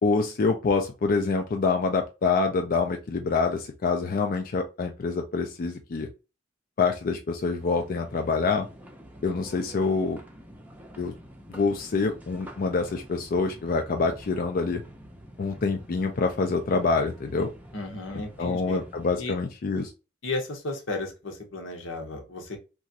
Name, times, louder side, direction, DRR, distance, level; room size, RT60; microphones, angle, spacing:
voice 1, 0.0-6.1 6.8-8.7 9.2-10.2 11.0-11.1 11.5-14.8 15.4-17.5 18.1-19.9, left 4 dB, 45° left, 4 dB, 0.4 m, -26 dB
sound 1, 7.6-19.2, equal, 10° right, 0.5 m, -47 dB
voice 2, 17.7-18.8 19.2-19.3 20.2-22.6, left 2 dB, 85° left, 3 dB, 0.9 m, -34 dB
3.0 x 2.4 x 2.7 m, 0.29 s
head